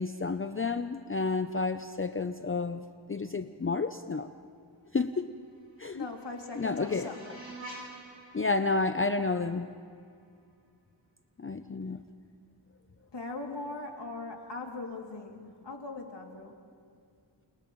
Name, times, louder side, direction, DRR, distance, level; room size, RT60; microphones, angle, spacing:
voice 1, 0.0-2.8 3.1-4.3 4.9-5.3 5.8-6.1 6.6-7.1 8.3-9.7 11.4-12.0, left 3 dB, 30° left, 8 dB, 0.6 m, -30 dB
sound 1, 5.4-10.4, right 2 dB, 85° right, 6.2 m, -49 dB
voice 2, 5.9-7.4 13.1-16.6, left 3 dB, 65° left, 0 dB, 2.8 m, -40 dB
29.5 x 28.5 x 3.1 m, 2.3 s
wide cardioid pair, 75°, 46 cm